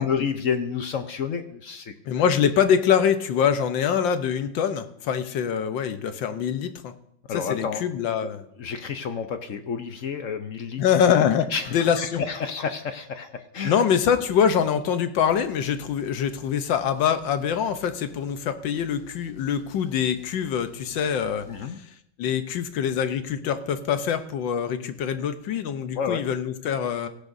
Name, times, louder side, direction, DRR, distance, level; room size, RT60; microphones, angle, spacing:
voice 1, 0.0-1.9 7.3-7.8 8.6-10.8 11.5-13.8 21.5-21.8 26.0-26.2, left 6 dB, 60° left, 8 dB, 0.9 m, -30 dB
voice 2, 2.1-6.9 7.3-8.4 10.8-12.2 13.6-21.5 22.2-27.1, left 8 dB, 75° left, 10 dB, 1.6 m, -24 dB
sound 1, 14.3-14.8 15.2-21.6, right 1 dB, 30° left, 5.9 m, -51 dB
17.5 x 15.0 x 2.7 m, 0.74 s
omnidirectional pair, 2.1 m